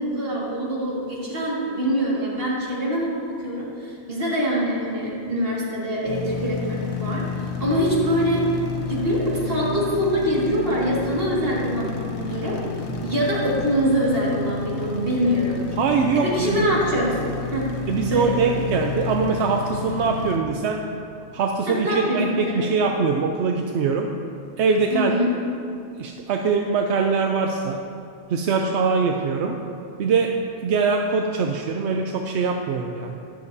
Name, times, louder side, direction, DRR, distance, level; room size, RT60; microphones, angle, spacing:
voice 1, 0.0-7.3 7.6-8.4 8.9-12.6 13.0-15.6 16.1-17.1 17.5-17.7 18.1-18.5 21.7-22.6 24.9-25.4, equal, 60° right, -5 dB, 2.2 m, -24 dB
sound 1, 6.1-20.4, left 4 dB, 80° left, 1.1 m, -31 dB
voice 2, 15.8-16.7 17.9-20.8 21.3-24.1 24.6-25.1 26.0-27.8 28.3-29.6 30.0-30.3 30.6-33.2, right 5 dB, 85° right, 3 dB, 0.9 m, -22 dB
12.0 x 10.5 x 2.7 m, 2.5 s
omnidirectional pair, 1.1 m